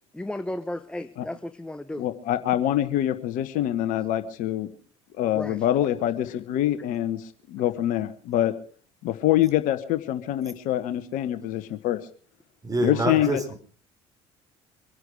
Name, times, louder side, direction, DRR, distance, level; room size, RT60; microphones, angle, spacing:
voice 1, 0.1-2.0 5.3-5.6, left 1 dB, 5° left, 11 dB, 1.0 m, -34 dB
voice 2, 2.0-4.7 5.2-8.5 9.0-12.0 12.8-13.4, left 12 dB, 60° left, 12 dB, 1.3 m, -25 dB
voice 3, 12.6-13.6, right 1 dB, 25° right, 7 dB, 4.6 m, -26 dB
25.0 x 11.0 x 4.9 m, 0.42 s
hypercardioid pair, 60°, 15 cm